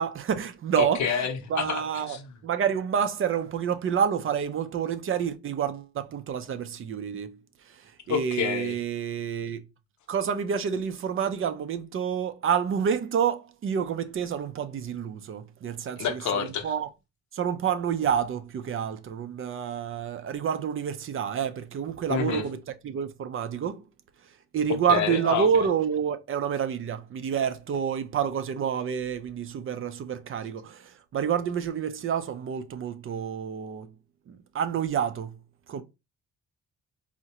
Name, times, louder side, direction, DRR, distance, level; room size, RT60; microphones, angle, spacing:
voice 1, 0.0-1.2 1.5-2.2 2.4-7.3 7.7-9.6 10.1-16.9 17.3-22.6 22.8-23.8 24.5-33.9 34.3-35.4 35.7-35.8, right 7 dB, 45° right, 0.4 m, -28 dB
voice 2, 0.8-2.3 8.1-8.8 16.0-16.7 22.1-22.4 24.9-25.7, left 7 dB, 70° left, 0.7 m, -28 dB
3.7 x 2.1 x 2.8 m
cardioid pair, 90°, 30 cm